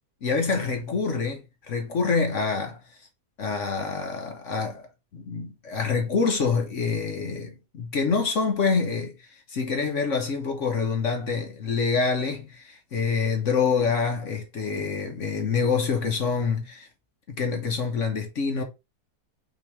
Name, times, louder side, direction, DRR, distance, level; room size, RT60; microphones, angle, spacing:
voice 1, 0.2-1.4 1.7-2.8 3.4-4.9 5.1-16.9 17.3-18.6, left 5 dB, 55° left, 1.2 m, -26 dB
5.6 x 2.9 x 3.2 m
omnidirectional pair, 1.6 m